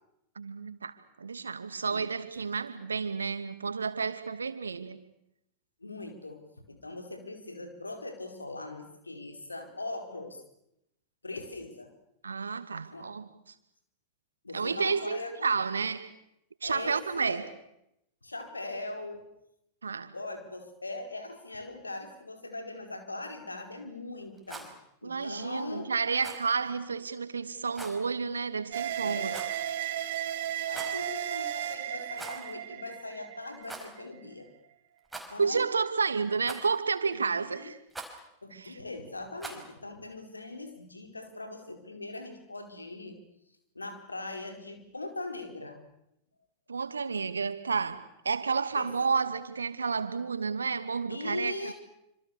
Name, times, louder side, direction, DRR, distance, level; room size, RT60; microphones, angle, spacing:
voice 1, 0.4-5.0 12.2-13.3 14.5-16.1 16.6-17.4 19.8-20.1 25.0-29.3 35.4-37.8 38.5-38.8 46.7-51.7, right 5 dB, 75° right, 11 dB, 2.4 m, -31 dB
voice 2, 5.8-10.4 11.2-11.9 12.9-13.1 14.4-15.5 16.6-17.4 18.2-19.3 20.1-24.7 25.0-25.9 29.0-29.4 30.6-34.5 35.3-35.7 37.1-37.7 38.4-43.2 43.7-45.8 48.7-48.9 51.1-51.7, left 2 dB, 80° left, 5 dB, 4.6 m, -40 dB
Rattle, 24.3-24.7 26.2-26.5 27.7-28.0 29.3-29.7 30.6-31.0 32.1-32.5 32.8-32.9 33.6-33.9 35.1-35.6 36.5-36.9 37.9-38.2 39.4-39.7, right 2 dB, 5° right, 5.3 m, -43 dB
sound 1, 28.7-34.1, right 11 dB, 55° right, 1.5 m, -34 dB
27.0 x 26.5 x 7.0 m, 0.82 s
figure-of-eight pair, 90°, 0 cm